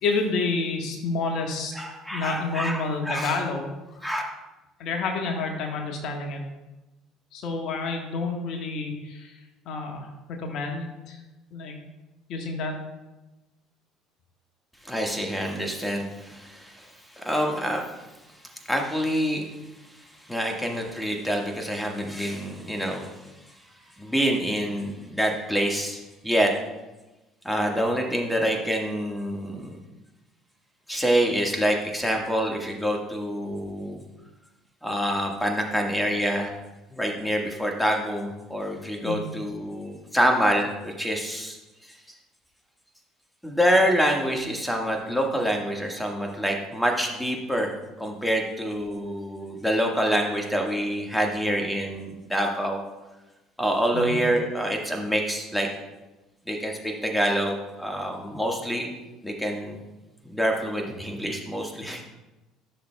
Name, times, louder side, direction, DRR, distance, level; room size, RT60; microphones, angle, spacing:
voice 1, 0.0-1.7 2.1-3.7 4.8-6.4 7.3-9.3 9.6-11.2 11.5-11.8 12.3-12.7 39.0-39.3 53.9-54.2, left 3 dB, 60° left, 2 dB, 1.4 m, -29 dB
voice 2, 1.7-3.3 4.0-4.2 14.8-16.9 17.1-17.8 18.7-19.4 20.3-23.1 24.0-26.5 27.4-29.7 30.9-34.0 34.8-36.5 36.9-41.6 43.4-47.7 48.0-52.8 53.6-55.7 56.5-58.9 59.2-59.8 60.2-62.0, equal, 5° left, 1 dB, 1.6 m, -26 dB
14.5 x 6.6 x 2.3 m, 1.1 s
hypercardioid pair, 65°, 0 cm